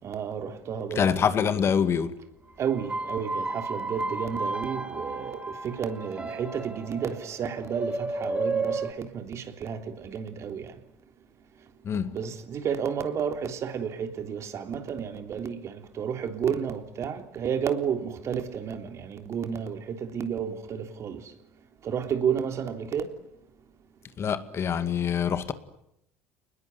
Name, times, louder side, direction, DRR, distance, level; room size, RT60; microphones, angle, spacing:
voice 1, 0.0-1.2 2.6-10.8 11.9-21.3 21.8-23.1, right 7 dB, 45° right, 3.5 m, -31 dB
voice 2, 1.0-2.2 11.8-12.2 24.2-25.5, left 7 dB, 40° left, 2.2 m, -25 dB
sound 1, 2.7-8.9, right 3 dB, 15° right, 4.2 m, -33 dB
29.5 x 20.5 x 9.6 m
hypercardioid pair, 70°, 7 cm